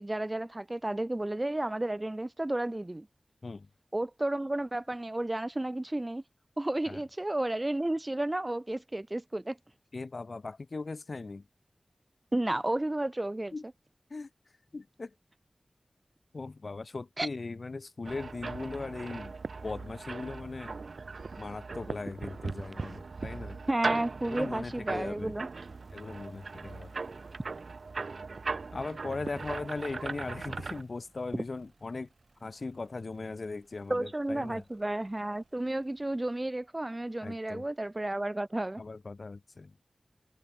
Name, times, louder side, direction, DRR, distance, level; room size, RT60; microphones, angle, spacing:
voice 1, 0.0-3.1 3.9-6.2 6.6-9.6 12.3-13.5 17.2-17.3 23.7-25.5 33.9-38.8, right 1 dB, 25° right, 0.7 m, -32 dB
voice 2, 9.9-11.5 13.5-13.6 14.1-14.3 14.7-15.1 16.3-19.3 19.6-20.8 21.4-23.6 24.2-25.3 25.9-26.9 28.7-32.1 32.4-34.6 37.2-37.7 38.8-39.8, left 3 dB, 60° left, 0.4 m, -39 dB
sound 1, 18.0-30.8, right 4 dB, 75° right, 0.7 m, -39 dB
sound 2, 24.2-36.3, right 3 dB, 60° right, 6.5 m, -66 dB
wide cardioid pair, 85°, 0 cm